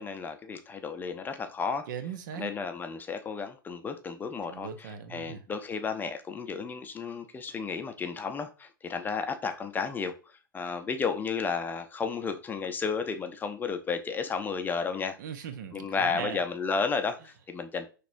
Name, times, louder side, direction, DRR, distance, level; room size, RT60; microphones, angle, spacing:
voice 1, 0.0-1.9 2.3-10.1 10.5-15.2 15.7-17.9, left 5 dB, 15° left, 0.5 m, -33 dB
voice 2, 1.9-2.5 4.4-5.4 15.2-16.4, right 8 dB, 55° right, 0.7 m, -39 dB
6.0 x 3.3 x 2.6 m
figure-of-eight pair, 95°, 12 cm